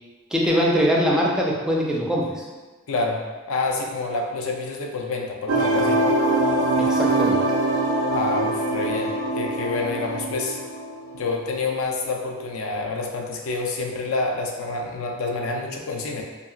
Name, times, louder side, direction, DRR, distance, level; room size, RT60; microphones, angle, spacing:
voice 1, 0.3-2.5 6.8-7.4, equal, 5° right, -4 dB, 0.3 m, -22 dB
voice 2, 2.9-6.0 8.1-10.6 11.1-16.2, left 3 dB, 75° left, 1 dB, 0.4 m, -28 dB
sound 1, 5.5-11.3, right 2 dB, 80° right, 0.4 m, -23 dB
2.7 x 2.7 x 2.3 m, 1.3 s
head